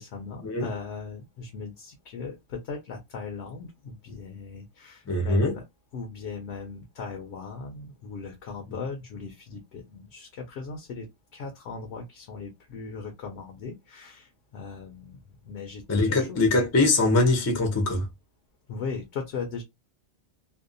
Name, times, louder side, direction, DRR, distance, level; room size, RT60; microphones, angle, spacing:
voice 1, 0.0-5.6 5.9-16.4 18.7-19.6, left 5 dB, 75° left, 0.9 m, -38 dB
voice 2, 5.1-5.6 15.9-18.1, left 2 dB, 20° left, 0.4 m, -22 dB
2.6 x 2.1 x 2.5 m
omnidirectional pair, 1.2 m